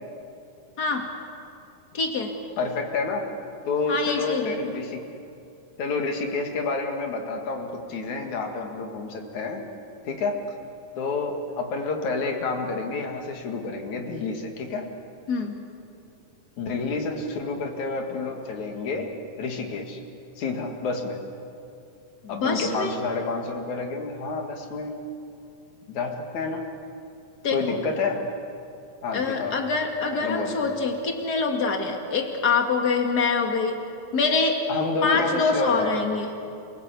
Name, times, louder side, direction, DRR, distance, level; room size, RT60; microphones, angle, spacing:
voice 1, 0.8-1.1 1.9-2.3 3.9-4.6 15.3-15.5 22.2-23.0 27.4-27.8 29.1-33.8 34.1-34.6 35.0-36.3, left 4 dB, 35° left, 3 dB, 2.1 m, -25 dB
voice 2, 2.6-3.2 3.6-5.0 5.8-9.6 10.0-10.4 11.0-14.9 16.6-20.0 20.4-21.2 22.3-25.0 25.9-26.6 27.5-28.3 29.0-29.5 30.1-30.6 34.7-35.9, left 3 dB, 60° left, 3 dB, 3.3 m, -29 dB
28.0 x 18.0 x 8.3 m, 2.6 s
omnidirectional pair, 3.8 m